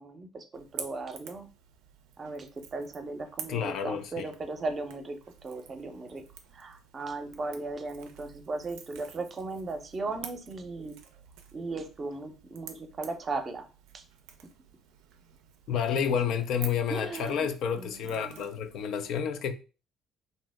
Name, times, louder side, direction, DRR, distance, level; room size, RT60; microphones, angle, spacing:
voice 1, 0.0-1.5 2.2-5.2 5.4-6.2 6.5-11.0 11.5-13.7 13.9-14.0 16.9-17.5 17.7-18.4, right 3 dB, 40° right, 0.6 m, -37 dB
Crackle / Crack, 0.5-18.9, right 8 dB, 80° right, 0.3 m, -49 dB
voice 2, 3.5-4.3 15.7-19.5, left 7 dB, 65° left, 0.3 m, -30 dB
2.7 x 2.0 x 3.3 m
hypercardioid pair, 65°, 0 cm